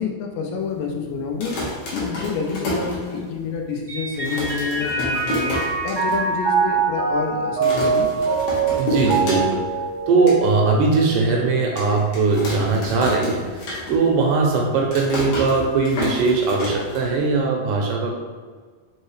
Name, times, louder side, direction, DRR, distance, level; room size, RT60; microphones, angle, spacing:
voice 1, 0.0-5.6 5.8-8.1, left 5 dB, 85° left, 1 dB, 2.2 m, -28 dB
sound 1, 1.2-3.5 3.8-3.9 4.1-6.2 6.6-6.7 6.9-7.2 7.6-9.8 10.0-10.4 10.9-11.0 11.8-14.2 14.5-17.4, left 1 dB, 65° left, 2.2 m, -29 dB
Mallet percussion, 3.9-11.6, right 4 dB, 55° right, 1.0 m, -24 dB
voice 2, 8.8-9.7 10.1-13.4 13.9-18.2, right 4 dB, 80° right, 0 dB, 2.1 m, -20 dB
5.5 x 2.7 x 3.2 m, 1.5 s
omnidirectional pair, 3.9 m